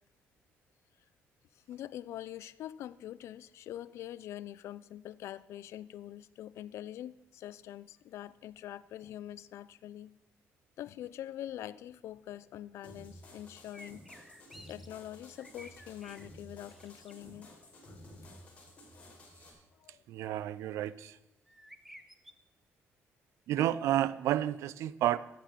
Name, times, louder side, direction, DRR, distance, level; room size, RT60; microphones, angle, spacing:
voice 1, 1.7-10.1 10.8-14.0 14.7-17.5 17.9-18.0 19.7-20.8, left 12 dB, 75° left, 18 dB, 0.5 m, -44 dB
sound 1, 12.8-19.5, left 1 dB, 25° left, 3.9 m, -53 dB
sound 2, 13.7-14.9 15.2-16.3 16.7-17.1 21.5-22.3, equal, 5° right, 0.9 m, -53 dB
voice 2, 20.1-21.2 23.5-25.2, right 12 dB, 90° right, 18 dB, 0.5 m, -30 dB
13.5 x 8.6 x 7.3 m, 0.94 s
cardioid pair, 135°, 5 cm